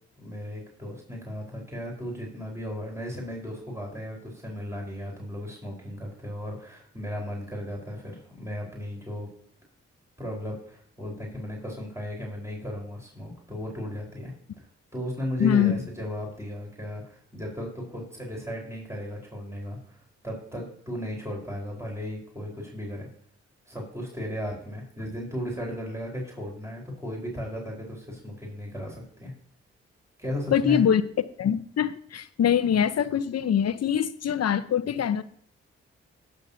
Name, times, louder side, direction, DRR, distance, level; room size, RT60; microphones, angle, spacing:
voice 1, 0.2-9.3 10.2-14.7 14.9-23.1 23.7-29.3 30.2-30.8, equal, 10° right, -1 dB, 4.4 m, -35 dB
voice 2, 15.4-15.8 30.5-31.0 31.4-35.2, left 8 dB, 55° left, 13 dB, 0.9 m, -23 dB
19.0 x 6.8 x 2.8 m, 0.62 s
hypercardioid pair, 40°, 30 cm